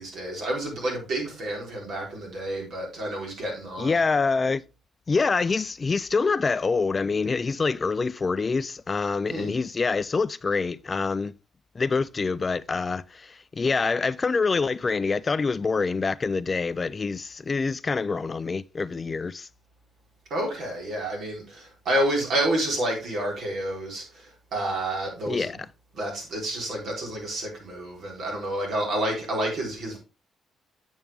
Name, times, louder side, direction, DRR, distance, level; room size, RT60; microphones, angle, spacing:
voice 1, 0.0-4.0 9.3-9.5 20.3-25.5 25.9-30.0, right 1 dB, 70° right, 4.0 m, -29 dB
voice 2, 3.8-4.6 5.1-11.3 11.7-19.5 25.3-25.6, left 4 dB, 35° left, 0.4 m, -26 dB
8.9 x 6.1 x 3.5 m
supercardioid pair, 65°, 0 cm